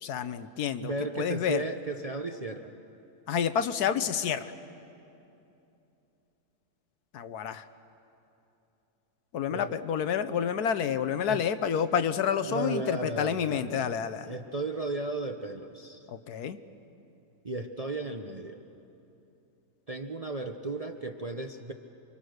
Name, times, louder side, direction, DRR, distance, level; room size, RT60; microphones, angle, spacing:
voice 1, 0.0-1.6 3.3-4.5 7.1-7.6 9.3-14.3 16.1-16.6, left 8 dB, 75° left, 11 dB, 1.3 m, -29 dB
voice 2, 0.8-2.7 9.5-9.7 11.2-11.4 12.5-13.9 14.2-16.1 17.4-18.6 19.9-21.7, right 2 dB, 35° right, 4 dB, 0.7 m, -35 dB
28.5 x 24.5 x 6.5 m, 2.8 s
omnidirectional pair, 1.7 m